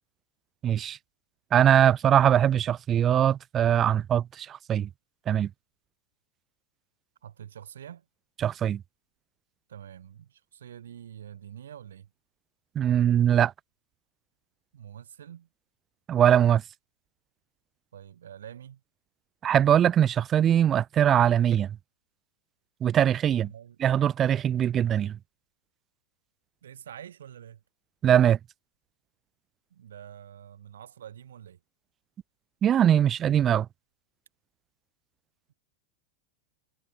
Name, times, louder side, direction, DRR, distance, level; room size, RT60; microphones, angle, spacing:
voice 1, 0.6-1.0 1.5-4.9 5.3-5.5 8.4-8.8 12.8-13.5 16.1-16.6 19.4-21.8 22.8-23.5 23.8-25.2 28.0-28.4 32.6-33.7, right 10 dB, 25° right, 0.6 m, -22 dB
voice 2, 7.2-8.0 9.7-12.1 14.7-15.5 17.9-18.8 23.3-23.8 26.6-27.6 29.7-31.6 35.5-35.6, right 9 dB, 65° right, 2.9 m, -46 dB
figure-of-eight pair, 90°, 0 cm